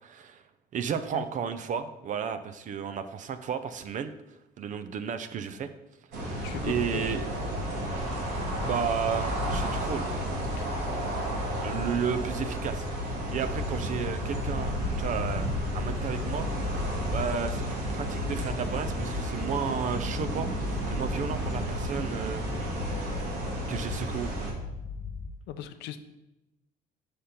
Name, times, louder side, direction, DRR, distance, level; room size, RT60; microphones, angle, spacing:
voice 1, 0.0-0.4 0.7-4.1 4.6-5.7 6.2-7.2 8.7-10.1 11.6-12.9 13.3-15.5 15.7-16.5 17.1-22.4 23.7-24.4, right 7 dB, 50° right, 11 dB, 0.5 m, -33 dB
sound 1, 6.1-24.5, equal, 85° right, 1.6 m, -32 dB
voice 2, 6.4-7.1 10.6-10.7 25.5-26.0, left 9 dB, 85° left, 10 dB, 0.5 m, -38 dB
sound 2, 6.7-25.3, left 3 dB, 35° left, 0.4 m, -39 dB
5.1 x 4.2 x 5.6 m, 0.98 s
cardioid pair, 110°, 17 cm